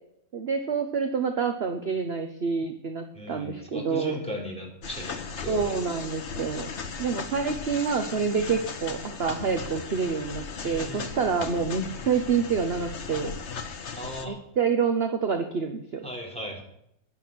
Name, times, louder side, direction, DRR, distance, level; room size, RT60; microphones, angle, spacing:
voice 1, 0.3-4.2 5.5-13.3 14.2-16.1, right 5 dB, 45° right, 6 dB, 1.2 m, -27 dB
voice 2, 3.1-5.8 10.6-11.3 14.0-14.4 16.0-16.6, left 1 dB, 5° left, -1 dB, 3.9 m, -37 dB
sound 1, 4.8-14.3, left 5 dB, 50° left, 1.3 m, -37 dB
12.5 x 10.5 x 6.3 m, 0.75 s
omnidirectional pair, 1.6 m